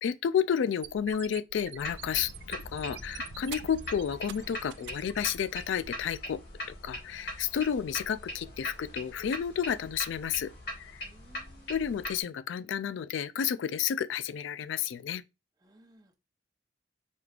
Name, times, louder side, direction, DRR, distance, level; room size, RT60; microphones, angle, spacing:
voice 1, 0.0-6.4 6.8-10.5 10.8-11.0 11.7-15.2, left 8 dB, 85° left, 0.3 m, -31 dB
Rocket Launcher Interference, 0.7-5.7, right 11 dB, 70° right, 0.3 m, -46 dB
sound 1, 1.8-12.2, left 1 dB, 60° left, 1.5 m, -41 dB
voice 2, 11.0-11.8 15.6-16.2, right 1 dB, 20° right, 0.7 m, -59 dB
5.0 x 3.3 x 2.4 m
head